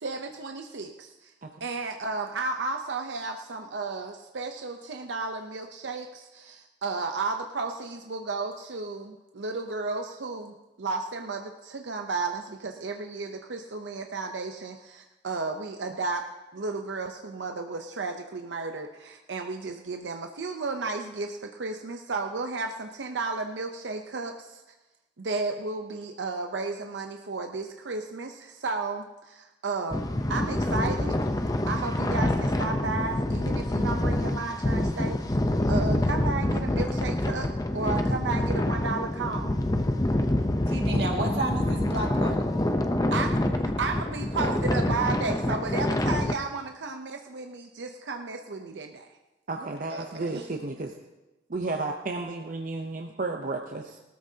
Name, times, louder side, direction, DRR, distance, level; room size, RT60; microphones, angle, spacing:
voice 1, 0.0-1.3 1.6-16.3 16.5-24.6 25.2-31.2 31.7-35.2 35.7-39.6 43.1-43.4 43.8-49.1, right 3 dB, 90° right, 4 dB, 0.7 m, -33 dB
sound 1, 29.9-46.3, left 1 dB, 20° left, 0.7 m, -26 dB
voice 2, 40.7-42.5 49.6-50.4, right 2 dB, 65° right, 1 dB, 2.1 m, -32 dB
voice 3, 49.5-50.9 51.5-53.6, right 3 dB, 50° right, 3 dB, 0.7 m, -32 dB
19.5 x 13.5 x 2.8 m, 1.0 s
head